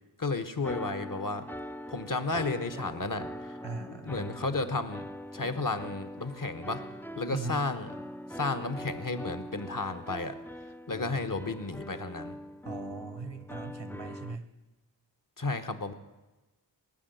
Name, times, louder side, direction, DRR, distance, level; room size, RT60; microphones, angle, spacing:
voice 1, 0.2-1.5 1.9-3.3 3.9-5.0 5.3-6.8 7.2-7.9 8.3-10.3 10.9-12.4 15.4-15.9, left 3 dB, 45° left, 10 dB, 1.2 m, -32 dB
sound 1, 0.6-14.4, equal, 5° left, 0.4 m, -42 dB
voice 2, 3.6-4.2 7.3-7.6 12.6-14.5, right 3 dB, 90° right, 9 dB, 1.2 m, -39 dB
19.0 x 6.4 x 9.3 m, 1.1 s
wide cardioid pair, 40°, 43 cm